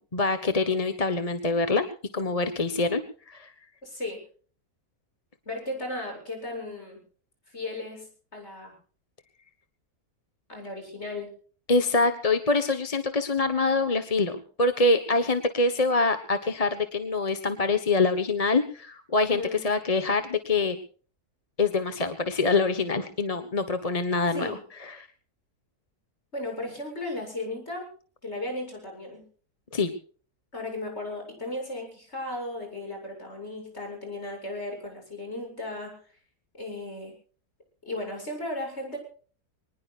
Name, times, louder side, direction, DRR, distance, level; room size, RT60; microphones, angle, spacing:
voice 1, 0.1-1.9 2.1-3.5 11.7-20.8 21.6-25.1 29.7-29.9, left 3 dB, 25° left, 8 dB, 1.2 m, -25 dB
voice 2, 3.8-4.2 5.5-7.0 7.5-8.7 10.5-11.3 19.3-19.7 24.3-24.6 26.3-27.9 28.2-29.2 30.5-36.0 36.6-37.1 37.9-39.0, left 2 dB, 45° left, 2 dB, 8.0 m, -35 dB
25.0 x 20.0 x 2.5 m, 0.42 s
omnidirectional pair, 1.7 m